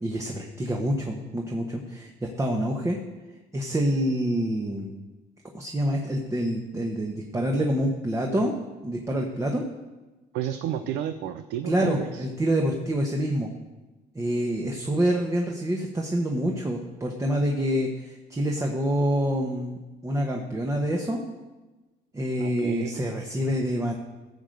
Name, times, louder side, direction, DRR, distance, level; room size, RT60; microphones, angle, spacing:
voice 1, 0.0-3.0 3.5-4.9 5.5-8.5 8.8-9.6 11.6-13.5 14.1-21.2 22.1-23.9, equal, 20° right, 1 dB, 1.3 m, -27 dB
voice 2, 10.3-12.3 22.4-23.0, right 10 dB, 85° right, 10 dB, 0.6 m, -32 dB
14.5 x 5.2 x 7.8 m, 1.1 s
cardioid pair, 110°, 17 cm